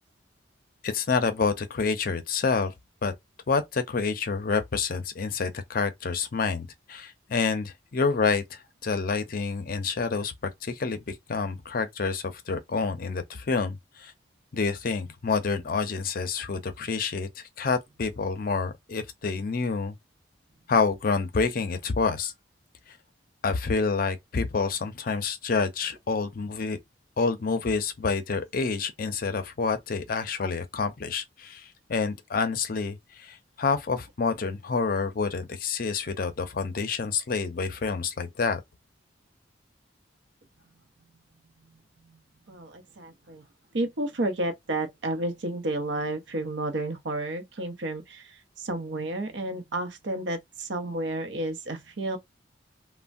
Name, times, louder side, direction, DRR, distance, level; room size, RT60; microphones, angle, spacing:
voice 1, 0.8-2.7 3.0-3.1 3.5-10.3 10.6-14.1 14.5-19.9 20.7-22.3 23.4-26.8 27.2-38.6, left 4 dB, 50° left, 0.5 m, -28 dB
voice 2, 42.5-43.4 43.7-52.2, right 1 dB, 70° right, 0.7 m, -31 dB
3.2 x 2.1 x 2.5 m
head